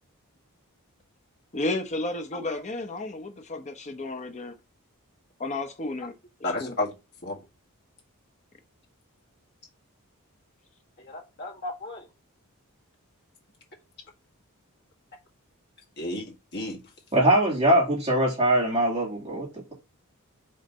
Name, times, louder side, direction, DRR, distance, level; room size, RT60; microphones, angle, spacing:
voice 1, 1.5-4.5 5.4-6.1 6.6-6.7, left 2 dB, 30° left, 0.9 m, -32 dB
voice 2, 6.4-6.9 7.2-7.4 11.0-12.0 16.0-16.2 16.5-16.8, left 2 dB, 50° left, 1.9 m, -32 dB
voice 3, 17.1-19.7, right 1 dB, 30° right, 2.4 m, -22 dB
5.2 x 3.3 x 5.5 m
head